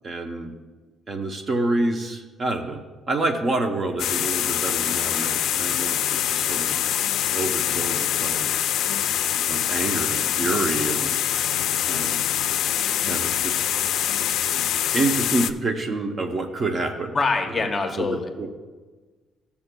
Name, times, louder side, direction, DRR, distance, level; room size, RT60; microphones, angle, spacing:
voice 1, 0.0-0.5 1.1-2.8 3.1-6.8 7.3-8.5 9.5-11.1 11.9-12.2 13.0-13.6 14.9-17.1 17.5-17.6 18.0-18.5, right 2 dB, 30° right, 5 dB, 0.7 m, -27 dB
sound 1, 4.0-15.5, left 10 dB, 75° left, 0.3 m, -24 dB
voice 2, 9.3-9.7 17.1-18.3, left 4 dB, 25° left, 4 dB, 0.8 m, -25 dB
14.0 x 6.9 x 2.2 m, 1.3 s
cardioid pair, 150°, 0 cm